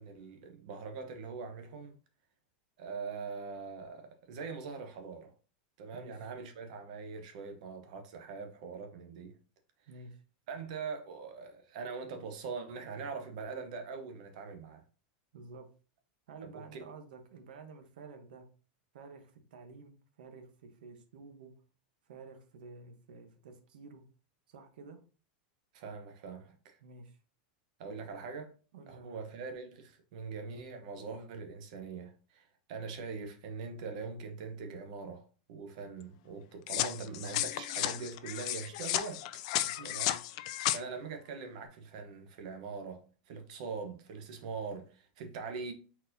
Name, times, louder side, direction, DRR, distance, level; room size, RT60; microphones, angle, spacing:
voice 1, 0.0-2.0 2.8-5.3 5.8-9.4 10.5-14.8 16.4-16.9 25.7-26.8 27.8-28.5 28.9-35.2 35.5-39.2 39.8-40.2 40.4-45.7, right 5 dB, 55° right, 0.8 m, -42 dB
voice 2, 9.9-10.2 15.3-15.7 16.3-18.5 18.9-21.5 22.1-24.0 24.5-25.0 26.8-27.2 28.7-29.2 39.6-39.9, right 4 dB, 80° right, 0.9 m, -51 dB
sound 1, 36.7-40.8, left 14 dB, 50° left, 0.3 m, -33 dB
4.3 x 4.1 x 2.6 m
supercardioid pair, 165°, 5 cm